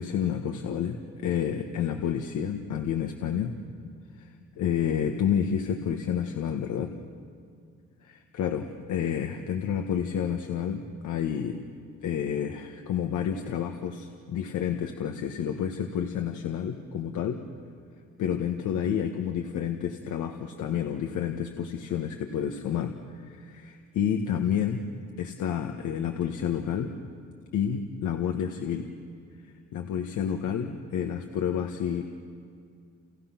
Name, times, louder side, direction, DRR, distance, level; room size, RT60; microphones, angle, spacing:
voice 1, 0.0-3.6 4.2-4.3 4.6-6.9 8.3-11.6 12.0-17.4 18.2-24.8 25.2-26.9 27.5-28.9 29.7-32.0, left 8 dB, 80° left, 4 dB, 1.5 m, -29 dB
30.0 x 30.0 x 6.0 m, 2.3 s
cardioid pair, 90°, 30 cm